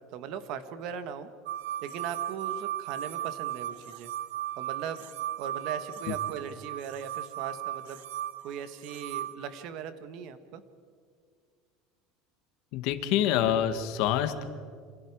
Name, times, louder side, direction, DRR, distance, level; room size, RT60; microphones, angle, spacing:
voice 1, 0.1-1.3 1.8-4.1 4.6-5.1 5.4-8.0 8.4-10.6, right 8 dB, 45° right, 11 dB, 1.5 m, -39 dB
sound 1, 1.5-9.4, right 12 dB, 90° right, 1.4 m, -36 dB
voice 2, 12.7-14.4, left 10 dB, 55° left, 9 dB, 1.8 m, -26 dB
28.5 x 27.0 x 4.9 m, 2.1 s
cardioid pair, 170°, 0 cm